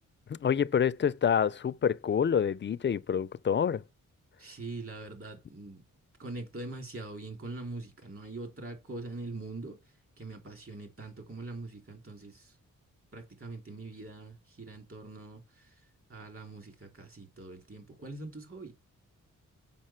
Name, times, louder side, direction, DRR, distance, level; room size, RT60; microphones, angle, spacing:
voice 1, 0.3-3.8, left 7 dB, 35° left, 0.4 m, -27 dB
voice 2, 4.4-5.8 6.2-9.8 10.2-12.5 13.1-15.7 16.1-18.7, right 2 dB, 45° right, 3.2 m, -43 dB
7.5 x 5.5 x 4.4 m
cardioid pair, 85°, 31 cm